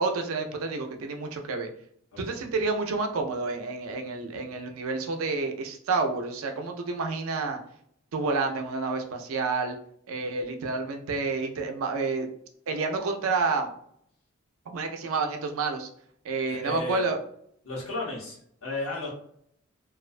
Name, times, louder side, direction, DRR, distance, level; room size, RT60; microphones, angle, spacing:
voice 1, 0.0-1.7 2.2-7.6 8.1-9.8 10.1-12.3 12.7-13.7 14.7-15.9 16.2-17.2, right 3 dB, 80° right, 4 dB, 0.4 m, -29 dB
voice 2, 16.5-17.0 17.6-19.1, left 2 dB, 85° left, -3 dB, 0.9 m, -34 dB
2.3 x 2.1 x 2.4 m, 0.66 s
head